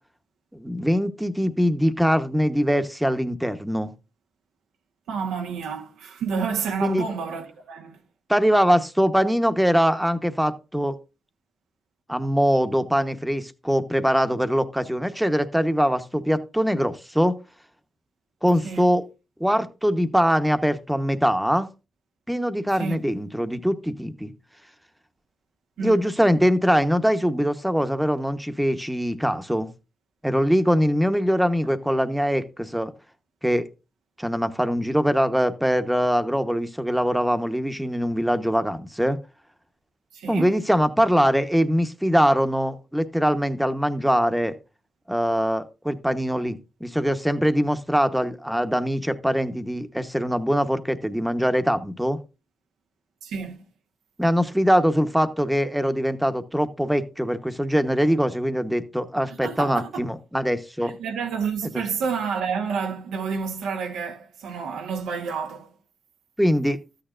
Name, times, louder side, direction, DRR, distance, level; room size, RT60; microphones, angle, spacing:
voice 1, 0.5-3.9 6.8-7.0 8.3-10.9 12.1-17.3 18.4-19.0 19.4-21.7 22.3-24.3 25.8-29.7 30.2-32.9 33.4-33.6 34.2-39.2 40.3-44.5 45.1-52.2 54.2-60.9 61.7-61.8 66.4-66.8, equal, 5° right, 1.1 m, -22 dB
voice 2, 5.1-8.0 18.6-18.9 22.8-23.0 25.8-26.1 40.1-40.6 53.2-53.6 59.3-60.0 60.8-65.7, right 6 dB, 85° right, 1.3 m, -29 dB
13.0 x 9.0 x 2.6 m
cardioid pair, 60°, 0 cm